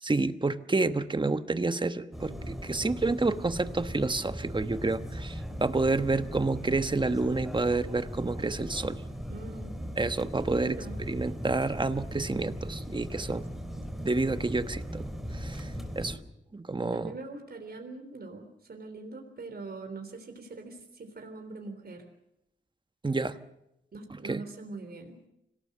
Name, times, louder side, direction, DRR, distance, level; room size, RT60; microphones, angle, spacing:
voice 1, 0.0-9.0 10.0-13.5 14.0-16.2 16.5-17.1 23.0-23.4 24.2-24.4, right 3 dB, 25° right, 11 dB, 1.1 m, -29 dB
sound 1, 2.1-16.2, equal, ahead, 3.6 m, -38 dB
voice 2, 9.3-9.8 10.5-11.0 16.9-22.0 23.9-25.2, right 3 dB, 55° right, 5 dB, 3.8 m, -42 dB
26.0 x 18.0 x 6.7 m, 0.84 s
wide cardioid pair, 90°, 20 cm